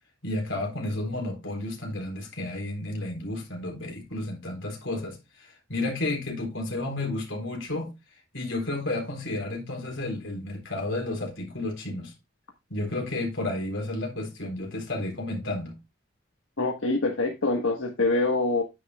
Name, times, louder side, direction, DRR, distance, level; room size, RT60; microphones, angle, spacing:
voice 1, 0.2-7.9 8.3-12.1 12.7-15.7, left 2 dB, 70° left, 3.8 m, -32 dB
voice 2, 16.6-18.6, left 2 dB, 85° left, 1.4 m, -25 dB
9.7 x 9.1 x 2.3 m
head